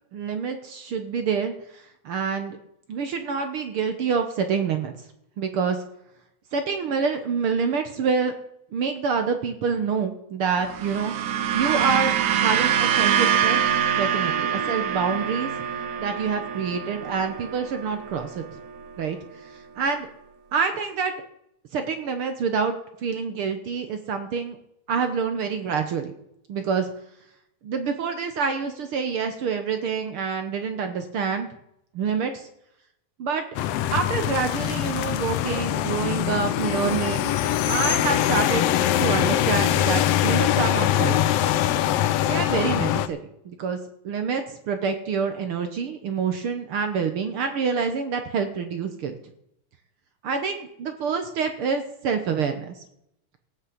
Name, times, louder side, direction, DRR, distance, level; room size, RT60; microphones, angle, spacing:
voice 1, 0.1-2.6 2.9-4.9 5.4-5.8 6.5-8.3 8.7-11.1 11.5-13.6 14.0-15.5 16.0-18.4 19.0-19.2 19.4-20.1 20.5-21.1 21.7-24.6 24.9-26.1 26.5-26.9 27.6-31.5 31.9-32.5 33.2-33.4 33.9-37.3 37.6-41.5 42.3-43.2 43.4-43.8 44.0-49.1 50.2-52.8, right 5 dB, 60° right, 7 dB, 1.5 m, -27 dB
sound 1, 10.6-19.0, right 8 dB, 85° right, 2.5 m, -25 dB
sound 2, 33.6-43.1, left 12 dB, 75° left, 1.5 m, -23 dB
17.0 x 6.3 x 7.8 m, 0.76 s
omnidirectional pair, 3.4 m